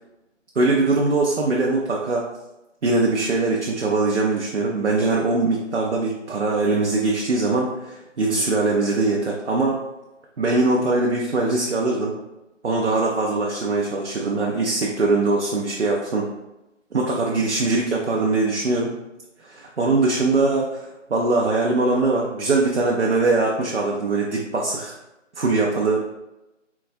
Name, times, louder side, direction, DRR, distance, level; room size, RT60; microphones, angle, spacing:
voice 1, 0.6-2.2 2.8-9.8 10.4-12.1 12.6-16.3 16.9-18.9 19.4-24.9 25.4-26.1, right 3 dB, 65° right, -2 dB, 0.5 m, -22 dB
3.8 x 2.2 x 2.5 m, 0.96 s
figure-of-eight pair, 175°, 38 cm